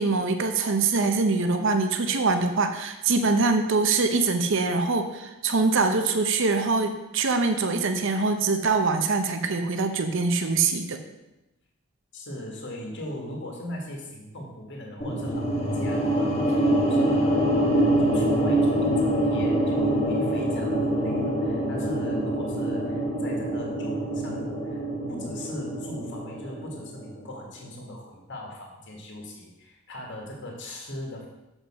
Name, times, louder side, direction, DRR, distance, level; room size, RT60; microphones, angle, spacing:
voice 1, 0.0-11.0, right 3 dB, 60° right, 6 dB, 0.8 m, -24 dB
voice 2, 12.1-24.8 25.1-31.3, left 1 dB, 60° left, -1 dB, 1.8 m, -39 dB
sound 1, 15.0-27.3, right 1 dB, 30° left, 1.2 m, -25 dB
7.4 x 5.4 x 6.0 m, 0.95 s
head